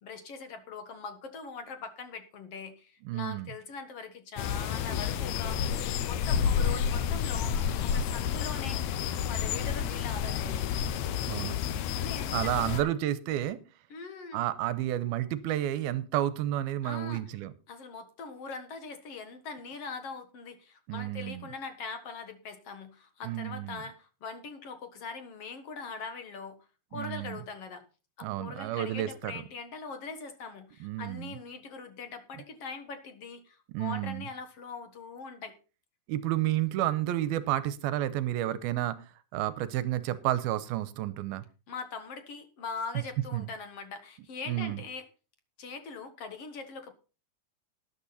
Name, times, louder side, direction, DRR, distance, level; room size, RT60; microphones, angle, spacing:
voice 1, 0.0-5.6 6.0-7.6 7.8-8.8 9.1-10.7 12.0-12.9 13.9-14.4 16.8-17.2 17.7-26.6 26.9-27.8 28.2-35.5 41.7-45.0 45.6-46.9, left 4 dB, 55° left, 9 dB, 1.9 m, -42 dB
voice 2, 3.1-3.5 11.3-11.6 12.3-13.6 14.3-17.5 20.9-21.5 23.2-23.8 26.9-27.4 28.2-29.4 30.8-31.3 33.7-34.3 36.1-39.1 39.3-41.4 43.3-43.5 44.5-44.8, right 13 dB, 85° right, 16 dB, 2.7 m, -31 dB
sound 1, 4.4-12.8, left 8 dB, 80° left, 1.6 m, -30 dB
13.0 x 11.0 x 4.1 m, 0.33 s
omnidirectional pair, 4.3 m